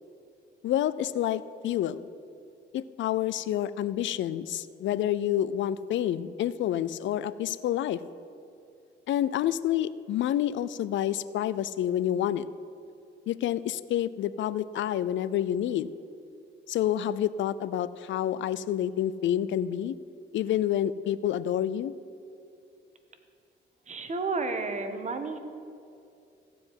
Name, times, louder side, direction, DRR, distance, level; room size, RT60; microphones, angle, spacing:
voice 1, 0.6-2.0 2.7-8.0 9.1-12.5 13.3-15.9 16.7-19.9 20.3-21.9, left 11 dB, 70° left, 16 dB, 0.5 m, -28 dB
voice 2, 23.9-25.4, right 3 dB, 35° right, 7 dB, 1.4 m, -31 dB
15.0 x 5.1 x 9.4 m, 2.5 s
cardioid pair, 90°, 20 cm